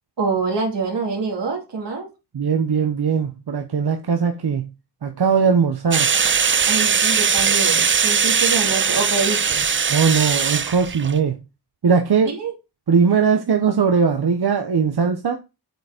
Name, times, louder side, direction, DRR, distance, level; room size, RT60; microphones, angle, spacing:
voice 1, 0.2-2.1 6.7-9.7 12.2-12.5, right 4 dB, 85° right, 2.8 m, -25 dB
voice 2, 2.3-4.7 5.0-6.1 9.9-11.4 11.8-12.3 12.9-15.4, right 6 dB, 65° right, 0.9 m, -19 dB
sound 1, 5.9-11.2, right 6 dB, 30° right, 0.4 m, -20 dB
7.9 x 4.9 x 5.0 m
wide cardioid pair, 80°, 41 cm